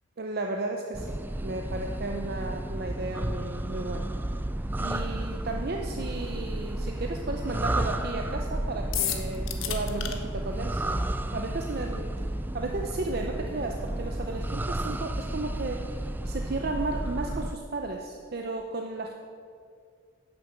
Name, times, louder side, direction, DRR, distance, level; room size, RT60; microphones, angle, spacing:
voice 1, 0.2-4.1 4.8-12.1 12.5-19.1, right 2 dB, 50° right, 2 dB, 0.6 m, -34 dB
sound 1, 0.9-17.6, right 1 dB, 10° right, 0.3 m, -32 dB
sound 2, 8.9-10.1, left 10 dB, 75° left, 1.0 m, -30 dB
10.5 x 6.9 x 7.1 m, 2.3 s
head